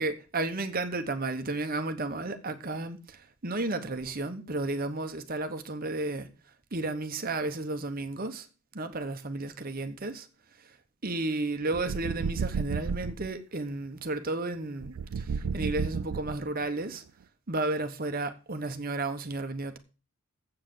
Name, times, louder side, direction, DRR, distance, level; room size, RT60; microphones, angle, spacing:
voice 1, 0.0-3.0 3.4-6.3 6.7-8.4 8.7-10.2 11.0-14.9 15.5-17.0 17.5-19.8, right 2 dB, 40° right, 0.9 m, -32 dB
sound 1, 11.7-13.3 14.8-16.6, right 5 dB, 80° right, 0.4 m, -32 dB
7.8 x 7.5 x 7.4 m
head